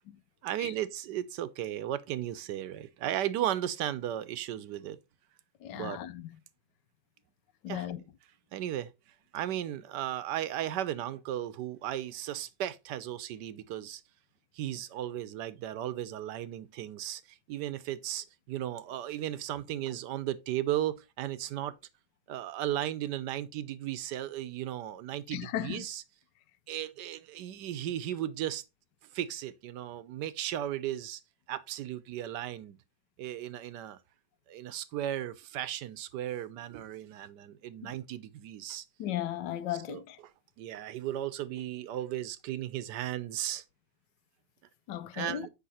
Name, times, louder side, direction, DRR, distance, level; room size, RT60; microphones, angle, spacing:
voice 1, 0.4-5.0 5.7-6.0 7.7-7.9 8.5-8.9 9.3-14.0 14.5-21.8 22.3-26.0 26.7-28.6 29.1-31.2 31.5-32.8 33.2-34.0 34.5-38.8 39.9-40.0 40.6-43.6 45.1-45.5, right 12 dB, 80° right, 1.3 m, -35 dB
voice 2, 5.6-6.4 7.6-8.0 25.3-25.8 37.8-37.9 39.0-40.2 44.9-45.5, left 12 dB, 85° left, 1.3 m, -36 dB
8.4 x 5.6 x 4.1 m
omnidirectional pair, 1.9 m